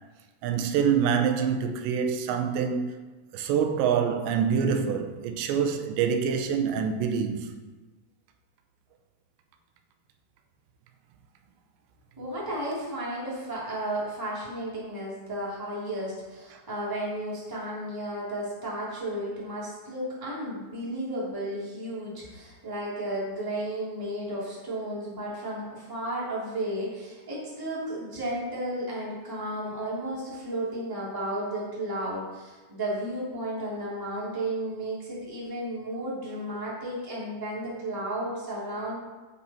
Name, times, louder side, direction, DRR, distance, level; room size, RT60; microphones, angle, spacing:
voice 1, 0.4-2.9 3.3-7.6, right 7 dB, 90° right, 3.1 m, -26 dB
voice 2, 12.2-39.0, right 1 dB, 5° right, 2.1 m, -33 dB
15.5 x 5.4 x 4.4 m
omnidirectional pair, 4.9 m